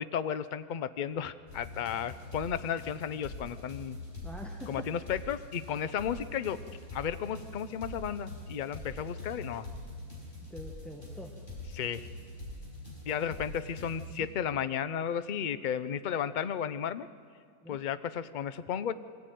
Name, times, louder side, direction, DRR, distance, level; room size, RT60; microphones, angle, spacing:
voice 1, 0.0-4.0 4.7-6.6 6.9-9.7 11.7-12.0 13.1-17.1 17.7-18.9, left 8 dB, 50° left, 13 dB, 0.5 m, -34 dB
sound 1, 1.5-14.2, left 2 dB, 35° left, 5.5 m, -44 dB
voice 2, 4.2-4.9 10.5-11.4 14.1-14.3 17.6-17.8, equal, ahead, 0 dB, 1.3 m, -45 dB
23.5 x 15.5 x 9.2 m, 2.1 s
omnidirectional pair, 1.6 m